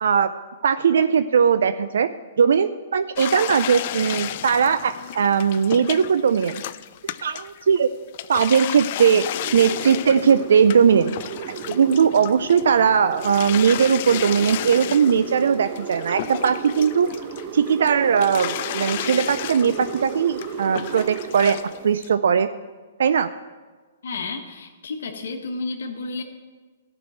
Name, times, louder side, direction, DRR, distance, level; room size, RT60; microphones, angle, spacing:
voice 1, 0.0-2.1 2.4-6.6 7.0-7.9 8.3-11.2 11.5-17.1 17.5-21.6 21.8-22.5 23.0-23.3, right 7 dB, 70° right, 12 dB, 0.5 m, -19 dB
sound 1, 3.2-7.8 8.1-12.7 13.1-17.9 18.2-21.8 22.0-22.1, left 13 dB, 50° left, 0.4 m, -33 dB
sound 2, 9.4-21.9, right 8 dB, 40° right, 1.0 m, -35 dB
voice 2, 24.0-26.2, left 3 dB, 70° left, 2 dB, 1.4 m, -31 dB
13.5 x 6.1 x 9.0 m, 1.4 s
hypercardioid pair, 130°, 0 cm